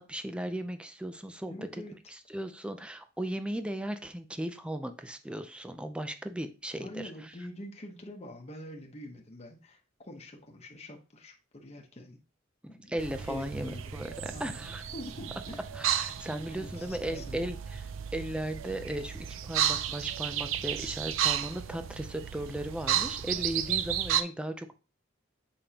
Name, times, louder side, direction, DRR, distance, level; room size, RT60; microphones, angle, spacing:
voice 1, 0.0-1.8 2.1-7.3 12.6-14.8 15.7-17.8 18.1-24.7, right 1 dB, 5° right, 8 dB, 0.5 m, -37 dB
voice 2, 1.5-1.9 6.8-12.2 12.7-15.6 16.2-17.4, left 1 dB, 35° left, 1 dB, 1.1 m, -45 dB
sound 1, 13.0-24.2, right 10 dB, 85° right, 0.5 m, -33 dB
7.0 x 5.2 x 2.9 m, 0.33 s
head